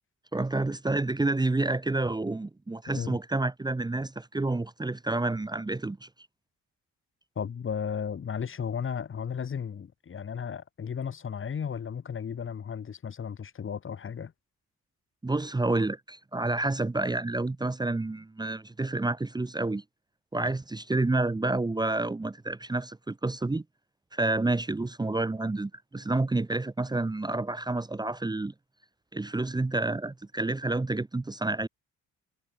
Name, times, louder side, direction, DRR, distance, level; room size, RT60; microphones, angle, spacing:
voice 1, 0.3-6.1 15.2-19.8 20.3-23.6 24.1-28.5 29.1-31.7, right 2 dB, 15° right, 1.1 m, -29 dB
voice 2, 7.4-14.3, left 7 dB, 40° left, 1.9 m, -34 dB
cardioid pair, 90°, 30 cm